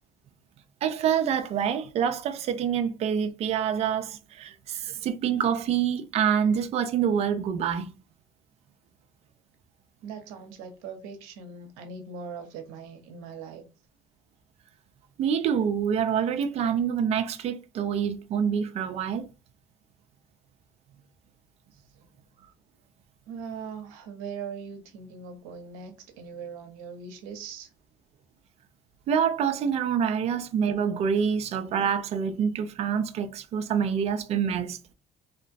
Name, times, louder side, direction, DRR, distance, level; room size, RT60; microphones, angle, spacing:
voice 1, 0.8-7.9 15.2-19.2 29.1-34.8, right 7 dB, 50° right, 0.4 m, -26 dB
voice 2, 10.0-13.6 21.7-22.1 23.3-27.7, right 5 dB, 85° right, 0.7 m, -40 dB
2.9 x 2.1 x 2.5 m
supercardioid pair, 85°, 14 cm